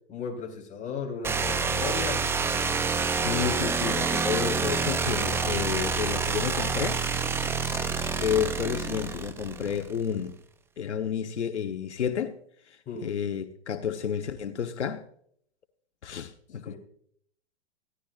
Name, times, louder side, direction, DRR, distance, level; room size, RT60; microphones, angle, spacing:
voice 1, 0.1-2.3 12.9-13.1 16.6-16.8, left 6 dB, 20° left, 3.9 m, -35 dB
sound 1, 1.2-10.0, right 5 dB, 5° right, 0.5 m, -28 dB
voice 2, 3.1-7.0 7.9-10.4 10.8-12.4 13.0-15.0 16.0-16.8, left 8 dB, 90° left, 1.2 m, -31 dB
19.5 x 15.0 x 2.5 m
hypercardioid pair, 125°, 33 cm